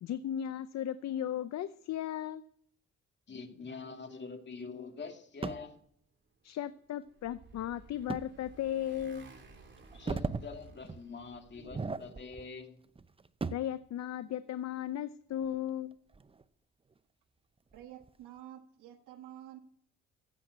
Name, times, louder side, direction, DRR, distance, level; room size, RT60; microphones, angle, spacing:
voice 1, 0.0-2.4 6.4-9.3 13.5-16.0, left 11 dB, 60° left, 0.7 m, -36 dB
voice 2, 3.3-5.8 9.9-12.8, left 4 dB, 35° left, 2.4 m, -45 dB
sound 1, 5.4-5.7 8.1-8.3 8.8-8.9 9.8-10.5 10.8-11.1 11.6-12.5 12.8-13.8 15.3-16.4 16.9-17.0 17.7-18.1, right 4 dB, 20° right, 0.7 m, -38 dB
Motorcycle, 6.7-11.7, right 3 dB, 40° right, 3.2 m, -56 dB
voice 3, 17.7-19.6, right 11 dB, 80° right, 1.4 m, -49 dB
15.5 x 7.7 x 8.1 m
cardioid pair, 90°, 30 cm